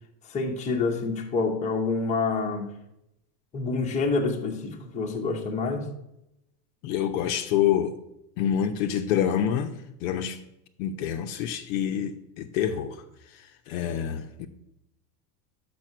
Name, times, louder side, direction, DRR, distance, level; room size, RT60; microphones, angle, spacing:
voice 1, 0.2-2.7 3.5-5.9, left 4 dB, 15° left, 0.8 m, -27 dB
voice 2, 6.8-8.0 8.4-10.4 10.8-13.0 13.3-14.5, left 9 dB, 55° left, 0.8 m, -27 dB
6.1 x 5.6 x 6.7 m
supercardioid pair, 145°, 50 cm